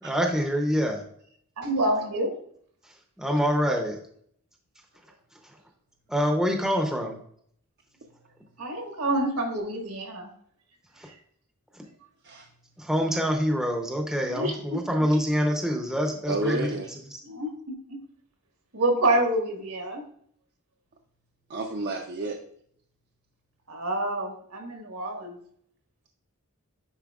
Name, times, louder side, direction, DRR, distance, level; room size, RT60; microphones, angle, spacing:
voice 1, 0.0-1.0 3.2-4.0 5.4-5.6 6.1-7.2 11.0-11.1 12.8-16.7 17.1-17.2, equal, ahead, 2 dB, 0.7 m, -26 dB
voice 2, 1.6-2.3 8.6-10.3 14.3-14.8 17.2-17.5 18.7-20.0 23.7-25.4, right 1 dB, 75° right, 2 dB, 1.6 m, -27 dB
voice 3, 16.3-17.0 21.5-22.4, right 2 dB, 50° right, 1 dB, 0.6 m, -31 dB
9.4 x 4.4 x 2.4 m, 0.64 s
head